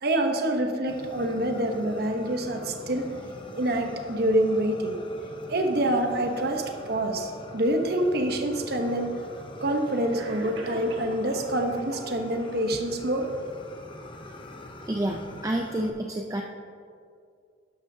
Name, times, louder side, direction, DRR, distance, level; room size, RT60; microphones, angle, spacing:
voice 1, 0.0-3.1 3.6-5.0 5.5-9.2 9.6-13.3, right 1 dB, 60° right, 4 dB, 1.0 m, -26 dB
Fire, 0.9-15.9, left 1 dB, 30° left, 0.7 m, -43 dB
Cough, 8.4-8.5 9.5-9.6 10.1-11.5 11.9-12.5, right 1 dB, 85° right, 1.5 m, -42 dB
voice 2, 14.9-16.4, right 1 dB, 20° right, 1 dB, 0.5 m, -29 dB
12.0 x 12.0 x 2.8 m, 2.3 s
head